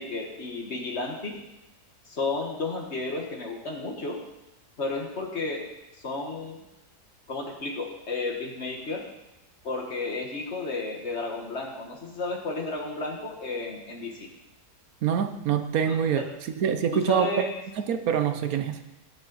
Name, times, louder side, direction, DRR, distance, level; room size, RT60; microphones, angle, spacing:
voice 1, 0.0-1.4 2.1-4.2 4.8-5.6 6.0-6.6 7.3-9.1 9.6-14.3 15.9-16.3 16.9-17.5, left 3 dB, 45° left, 2 dB, 1.6 m, -32 dB
voice 2, 15.0-16.2 16.6-17.3 17.8-18.8, right 8 dB, 70° right, 8 dB, 1.1 m, -25 dB
16.5 x 7.1 x 4.0 m, 0.96 s
omnidirectional pair, 1.7 m